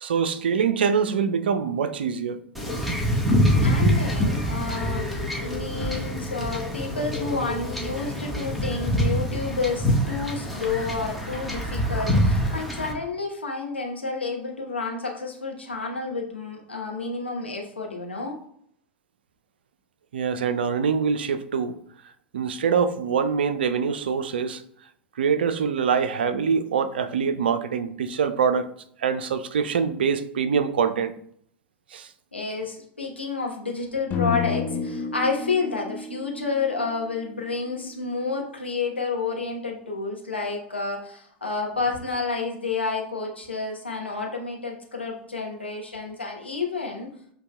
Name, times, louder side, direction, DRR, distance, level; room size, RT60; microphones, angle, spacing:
voice 1, 0.0-2.4 20.1-21.8 22.3-24.6 25.2-28.7 29.0-31.1 31.9-32.1, right 6 dB, 65° right, 0.4 m, -24 dB
Wind / Ocean / Boat Water vehicle, 2.5-12.9, equal, ahead, 0.9 m, -25 dB
voice 2, 3.6-5.1 5.4-18.4 32.3-47.1, left 4 dB, 85° left, 0.9 m, -30 dB
sound 1, 34.1-38.3, left 5 dB, 30° left, 0.5 m, -31 dB
7.7 x 2.7 x 2.2 m
figure-of-eight pair, 85°, 6 cm